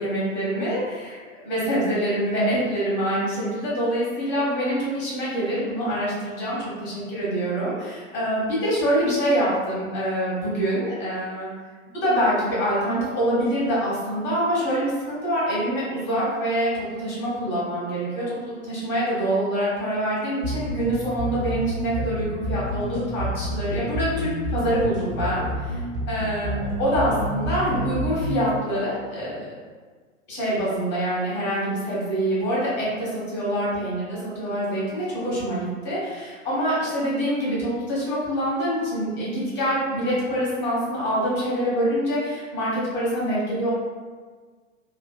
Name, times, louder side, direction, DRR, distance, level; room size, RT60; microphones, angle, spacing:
voice 1, 0.0-11.5 11.9-25.8 26.1-29.5 30.3-43.7, equal, 30° left, -7 dB, 1.4 m, -25 dB
sound 1, 20.4-28.4, equal, 70° right, 1.0 m, -29 dB
3.1 x 2.6 x 2.3 m, 1.5 s
figure-of-eight pair, 100°, 39 cm